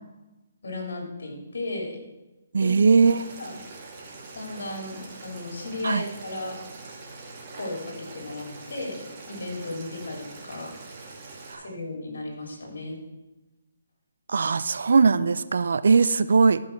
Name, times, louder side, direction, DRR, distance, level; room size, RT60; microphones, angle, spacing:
voice 1, 0.6-2.0 2.5-2.8 3.4-3.5 4.3-6.6 7.5-10.7 11.6-13.0, left 2 dB, 70° left, 0 dB, 2.8 m, -35 dB
voice 2, 2.5-3.2 5.8-6.0 11.5-11.6 14.3-16.6, right 4 dB, 70° right, 14 dB, 0.5 m, -20 dB
Boiling, 3.0-11.5, right 3 dB, 35° right, 2.1 m, -43 dB
13.5 x 5.5 x 4.5 m, 1.1 s
hypercardioid pair, 150°, 0 cm